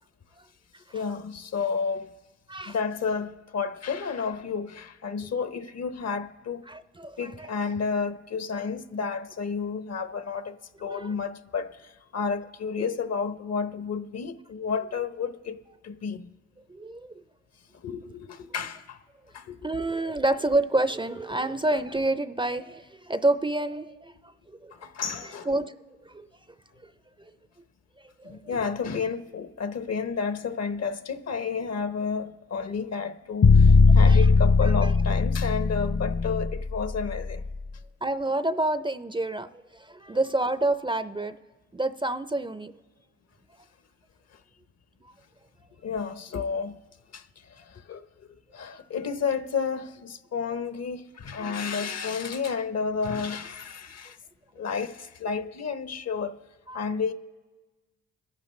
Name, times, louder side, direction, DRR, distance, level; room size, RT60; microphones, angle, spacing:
voice 1, 0.9-2.1 2.6-6.7 7.2-15.6 15.8-16.3 17.8-19.0 19.3-19.7 24.7-25.5 28.2-37.4 45.8-46.8 47.1-48.3 48.5-54.2 54.6-56.4 56.7-57.1, left 5 dB, 55° left, 0.9 m, -31 dB
voice 2, 6.7-7.5 10.9-11.1 12.8-12.9 16.7-17.1 19.6-24.7 25.2-25.8 26.1-26.3 26.8-26.9 28.2-28.4 34.1-34.3 34.6-34.9 38.0-41.4 41.7-42.7 56.7-56.8, right 2 dB, 15° right, 0.5 m, -28 dB
sound 1, 33.4-37.5, left 4 dB, 35° left, 0.6 m, -19 dB
29.5 x 11.0 x 3.2 m
supercardioid pair, 60°, 32 cm